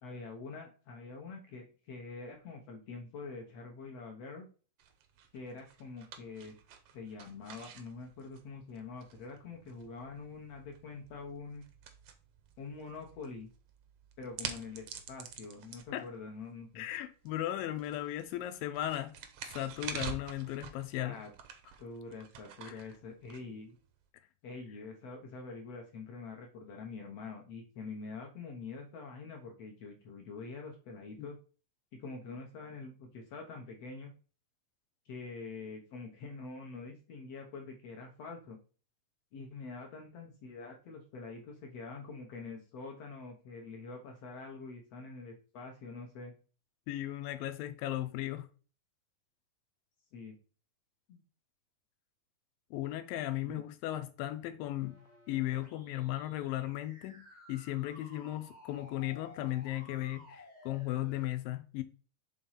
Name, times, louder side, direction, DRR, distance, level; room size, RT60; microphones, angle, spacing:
voice 1, 0.0-4.5 5.3-6.6 6.9-11.6 12.6-13.5 14.2-16.9 21.0-21.3 21.8-23.8 24.4-31.4 32.0-34.1 35.0-38.6 39.3-46.3 50.1-50.4 51.1-51.2 53.4-53.6, left 4 dB, 65° left, 1.7 m, -45 dB
sound 1, 4.8-24.0, right 8 dB, 70° right, 1.5 m, -49 dB
voice 2, 16.8-19.1 19.5-21.2 22.7-22.8 31.2-31.3 46.9-48.5 52.7-55.0 55.3-57.2 57.5-61.8, left 14 dB, 85° left, 2.4 m, -36 dB
sound 2, 54.8-61.3, left 2 dB, 30° left, 0.7 m, -56 dB
6.1 x 3.8 x 5.6 m
omnidirectional pair, 4.0 m